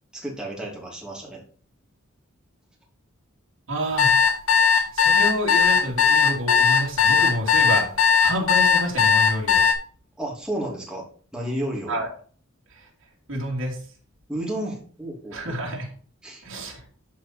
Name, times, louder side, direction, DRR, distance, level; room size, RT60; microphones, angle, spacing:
voice 1, 0.1-1.4 10.2-11.1 11.3-11.9 14.3-15.6 16.2-16.4, right 1 dB, 5° right, -3 dB, 2.9 m, -32 dB
voice 2, 3.7-4.1 4.9-9.7 11.9-12.1 12.7-12.9 13.3-13.9 15.3-15.9 16.4-16.9, right 1 dB, 70° right, -2 dB, 2.8 m, -29 dB
sound 1, 4.0-9.7, left 6 dB, 90° left, 1.9 m, -18 dB
12.5 x 4.5 x 4.4 m, 0.43 s
head